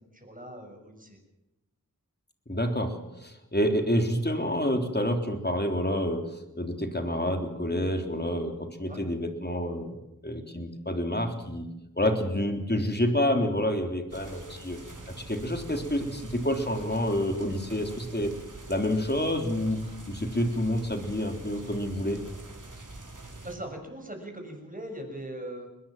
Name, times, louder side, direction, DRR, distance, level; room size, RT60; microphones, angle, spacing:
voice 1, 0.1-1.2 8.9-9.0 23.4-25.7, right 1 dB, 25° right, 3 dB, 6.6 m, -40 dB
voice 2, 2.5-11.7 12.0-14.8 15.1-18.3 18.7-19.8 20.1-22.2, equal, 30° left, 5 dB, 3.5 m, -28 dB
sound 1, 14.1-23.5, right 2 dB, 60° right, 4.0 m, -45 dB
22.5 x 20.5 x 7.4 m, 0.94 s
wide cardioid pair, 45°, 35 cm